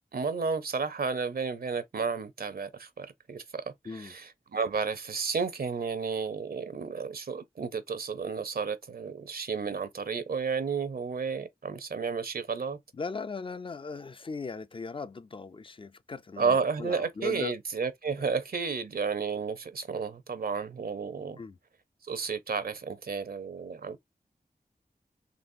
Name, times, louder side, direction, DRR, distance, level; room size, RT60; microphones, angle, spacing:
voice 1, 0.1-3.6 3.9-12.8 16.4-21.4 22.0-24.0, right 5 dB, 75° right, 0.6 m, -32 dB
voice 2, 12.9-17.5 18.2-18.3 21.4-21.6, left 4 dB, 35° left, 0.3 m, -38 dB
4.0 x 3.0 x 2.5 m
wide cardioid pair, 80°, 16 cm